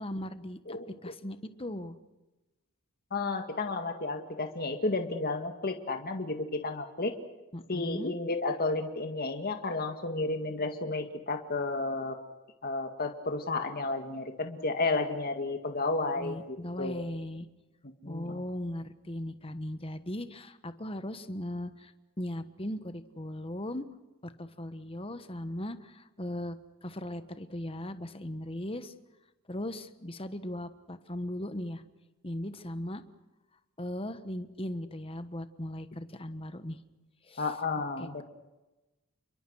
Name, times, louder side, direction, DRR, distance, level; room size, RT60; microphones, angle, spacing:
voice 1, 0.0-1.9 7.5-8.1 16.2-17.5 18.1-23.8 24.2-28.9 29.5-31.8 32.2-33.0 33.8-36.8 37.3-37.5 38.0-38.2, left 1 dB, 25° left, 10 dB, 1.3 m, -38 dB
voice 2, 0.7-1.1 3.1-7.1 7.7-12.2 12.6-17.1 18.0-18.4 37.4-38.2, left 3 dB, 45° left, 5 dB, 1.9 m, -32 dB
29.5 x 23.0 x 6.4 m, 1.1 s
head